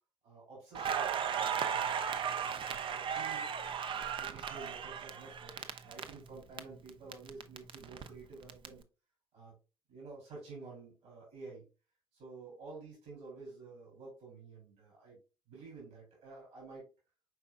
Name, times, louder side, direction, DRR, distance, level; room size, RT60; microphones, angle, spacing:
voice 1, 0.2-3.5 3.9-8.8 9.3-9.5 9.9-11.7 12.1-15.2 15.5-16.9, right 3 dB, 60° right, -4 dB, 2.9 m, -51 dB
Crackle, 0.7-6.6 6.9-8.7, right 7 dB, 45° right, 0.5 m, -36 dB
4.7 x 4.6 x 2.3 m, 0.30 s
figure-of-eight pair, 45°, 12 cm